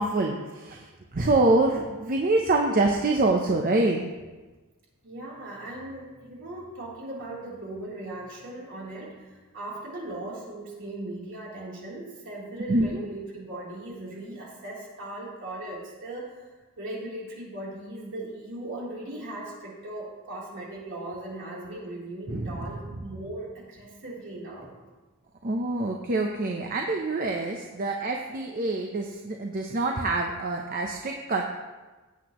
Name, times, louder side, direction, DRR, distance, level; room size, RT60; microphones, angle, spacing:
voice 1, 0.0-4.1 12.7-13.0 22.3-23.0 25.4-31.4, right 2 dB, 40° right, 1 dB, 0.7 m, -26 dB
voice 2, 5.0-16.5 16.8-24.7, right 1 dB, 60° right, -5 dB, 3.5 m, -38 dB
16.0 x 8.2 x 3.1 m, 1.2 s
head